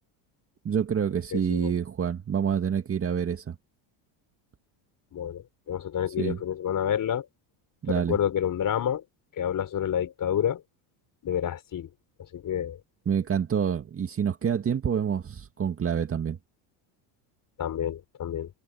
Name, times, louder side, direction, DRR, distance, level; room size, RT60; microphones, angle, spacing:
voice 1, 0.6-3.6 6.2-6.4 7.8-8.2 13.1-16.4, right 7 dB, 25° right, 1.9 m, -27 dB
voice 2, 1.3-1.7 5.1-7.3 7.9-9.0 9.4-10.6 11.2-11.9 12.3-12.8 17.6-18.5, left 9 dB, 40° left, 4.8 m, -29 dB
supercardioid pair, 115°, 48 cm